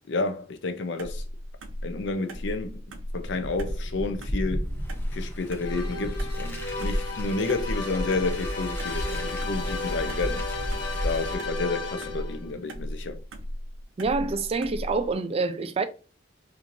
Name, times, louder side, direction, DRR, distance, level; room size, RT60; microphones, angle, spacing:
voice 1, 0.1-1.2 1.8-4.7 5.1-10.4 11.0-13.2, left 3 dB, 65° left, 0.5 m, -30 dB
sound 1, 1.0-15.1, equal, 80° right, 0.5 m, -37 dB
Car, 3.2-11.3, equal, 10° left, 0.7 m, -33 dB
sound 2, 5.6-12.5, left 3 dB, 85° left, 1.2 m, -35 dB
voice 2, 14.0-15.9, right 3 dB, 30° right, 0.4 m, -26 dB
4.4 x 2.6 x 2.6 m
head